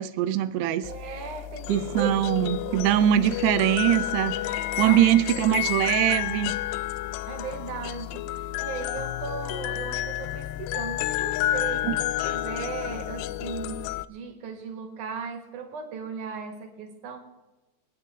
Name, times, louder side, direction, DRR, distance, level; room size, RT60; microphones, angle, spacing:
voice 1, 0.0-0.9 1.7-6.6 11.8-12.0, right 12 dB, 80° right, 12 dB, 2.9 m, -23 dB
sound 1, 0.8-14.1, left 14 dB, 85° left, 2.6 m, -30 dB
voice 2, 0.8-2.1 2.7-3.0 4.8-5.4 7.3-17.2, right 6 dB, 55° right, 5 dB, 2.7 m, -37 dB
25.0 x 9.7 x 3.6 m, 1.1 s
omnidirectional pair, 4.9 m